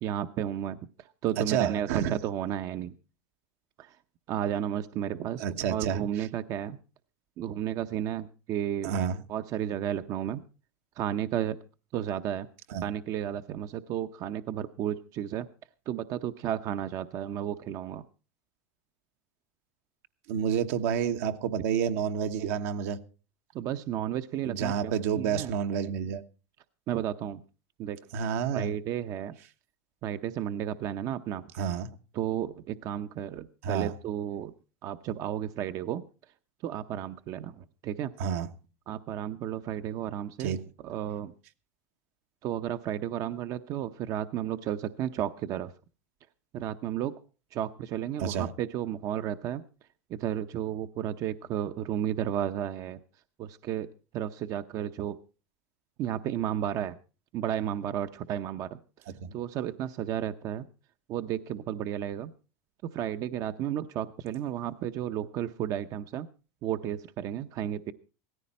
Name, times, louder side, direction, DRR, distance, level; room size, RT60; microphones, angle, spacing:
voice 1, 0.0-3.0 3.8-4.0 4.3-6.8 7.4-8.9 9.3-10.4 11.0-11.6 11.9-12.5 12.8-15.5 15.9-18.0 23.5-25.5 26.9-27.4 27.8-28.0 28.5-29.4 30.0-31.5 32.1-34.5 34.8-36.0 36.6-38.1 38.9-41.3 42.4-45.7 46.5-47.1 47.5-49.6 50.1-53.0 53.4-53.9 54.1-55.2 56.0-57.0 57.3-58.8 59.3-60.7 61.1-62.3 62.8-66.3 66.6-67.9, right 10 dB, 45° right, 0.7 m, -33 dB
voice 2, 1.4-2.2 5.4-6.0 8.8-9.2 12.7-12.8 20.3-23.0 24.4-26.2 28.1-28.7 31.6-31.9 33.6-33.9 38.2-38.5 40.4-40.6 48.2-48.5 59.2-59.4, right 8 dB, 70° right, 1.2 m, -29 dB
16.5 x 14.5 x 4.2 m
supercardioid pair, 130°, 9 cm